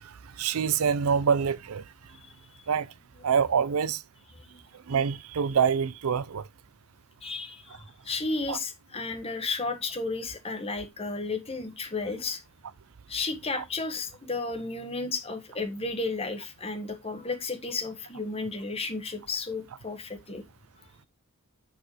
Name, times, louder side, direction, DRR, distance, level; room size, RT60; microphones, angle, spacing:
voice 1, 0.4-1.8 2.7-2.9 3.2-4.0 4.9-6.4 8.5-8.6 13.6-13.7, right 7 dB, 80° right, 0.5 m, -25 dB
voice 2, 7.2-12.4 13.1-20.4, left 3 dB, 25° left, 1.3 m, -33 dB
8.7 x 5.0 x 3.2 m
head